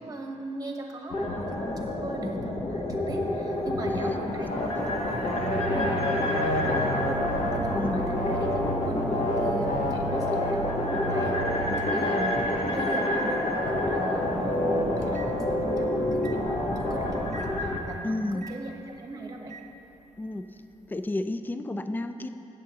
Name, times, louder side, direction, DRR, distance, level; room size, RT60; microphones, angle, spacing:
voice 1, 0.0-5.4 5.7-7.3 7.5-11.4 11.9-19.5, right 2 dB, 30° right, 1 dB, 1.0 m, -38 dB
sound 1, 1.1-17.8, left 2 dB, 50° left, 0.9 m, -30 dB
Microwave oven, 3.3-15.8 16.2-16.4 17.3-17.5 18.4-18.6 19.5-19.7, right 5 dB, 65° right, 0.4 m, -40 dB
voice 2, 3.9-4.5 4.8-4.9 7.7-8.0 18.0-18.5 20.2-20.5 20.9-22.3, left 2 dB, 15° left, 9 dB, 0.3 m, -32 dB
sound 2, 4.5-17.2, left 1 dB, 80° left, 1.3 m, -29 dB
17.0 x 7.3 x 2.9 m, 2.9 s
wide cardioid pair, 165°, 13 cm